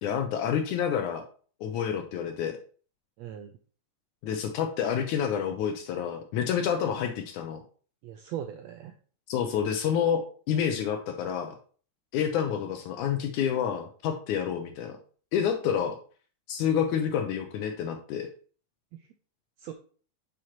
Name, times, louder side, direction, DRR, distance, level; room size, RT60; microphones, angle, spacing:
voice 1, 0.0-1.2 1.6-2.5 4.2-7.6 9.3-11.5 12.1-14.9 15.3-16.0 16.5-18.3, left 8 dB, 80° left, 5 dB, 2.2 m, -28 dB
voice 2, 3.2-3.5 8.0-9.0 18.9-19.1 19.6-19.7, right 10 dB, 90° right, 5 dB, 1.5 m, -39 dB
9.8 x 6.0 x 3.0 m, 0.43 s
omnidirectional pair, 3.6 m